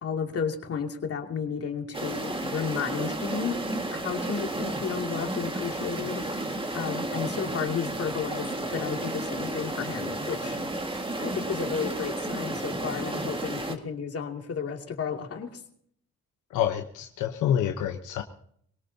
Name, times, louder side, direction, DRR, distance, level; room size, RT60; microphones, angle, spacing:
voice 1, 0.0-3.6 3.9-10.6 11.2-15.6, left 6 dB, 50° left, 2 dB, 2.8 m, -33 dB
sound 1, 1.9-13.7, right 1 dB, 15° right, 2.0 m, -32 dB
voice 2, 16.5-18.2, left 10 dB, 85° left, 4 dB, 1.2 m, -27 dB
22.5 x 18.5 x 2.9 m, 0.65 s
cardioid pair, 90°, 30 cm